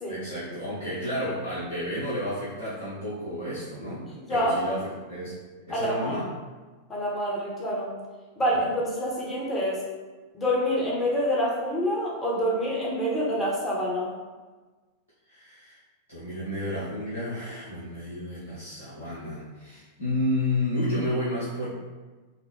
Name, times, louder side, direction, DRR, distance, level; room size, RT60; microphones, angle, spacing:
voice 1, 0.1-5.4 5.7-6.3 15.3-15.8 16.1-21.7, left 1 dB, 80° left, -11 dB, 0.9 m, -31 dB
voice 2, 5.7-6.1 6.9-7.9 8.4-9.8 10.3-14.1, equal, 20° left, -4 dB, 0.9 m, -27 dB
4.0 x 2.0 x 3.1 m, 1.3 s
figure-of-eight pair, 90°, 0 cm